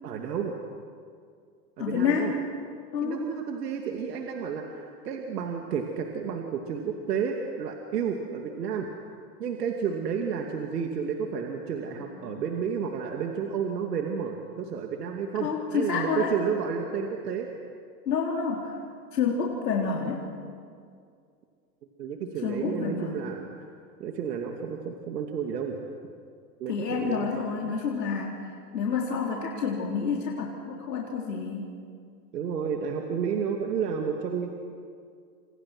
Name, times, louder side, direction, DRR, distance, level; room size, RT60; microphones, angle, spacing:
voice 1, 0.0-0.5 1.8-2.3 3.0-8.9 9.4-17.5 22.0-23.5 24.0-25.8 26.6-27.3 32.3-34.5, right 7 dB, 75° right, 2 dB, 2.7 m, -31 dB
voice 2, 1.8-2.3 2.9-3.3 12.1-12.4 15.4-16.4 18.1-18.8 19.1-20.3 22.4-23.1 26.7-31.7, left 5 dB, 80° left, -1 dB, 3.9 m, -29 dB
28.5 x 27.5 x 6.2 m, 2.2 s
hypercardioid pair, 105°, 49 cm